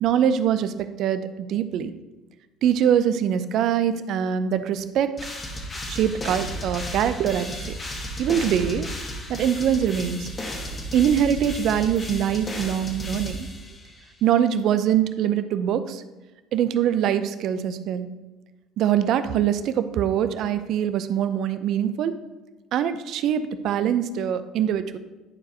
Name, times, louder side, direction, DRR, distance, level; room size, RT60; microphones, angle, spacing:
voice 1, 0.0-1.9 2.6-5.1 5.9-7.7 8.2-8.9 9.3-10.3 10.9-13.5 14.2-16.0 16.5-18.1 18.8-22.2 22.7-25.0, right 9 dB, 60° right, 12 dB, 0.6 m, -23 dB
sound 1, 5.2-14.0, equal, 30° left, 2.1 m, -34 dB
10.5 x 4.8 x 4.6 m, 1.2 s
hypercardioid pair, 60°, 0 cm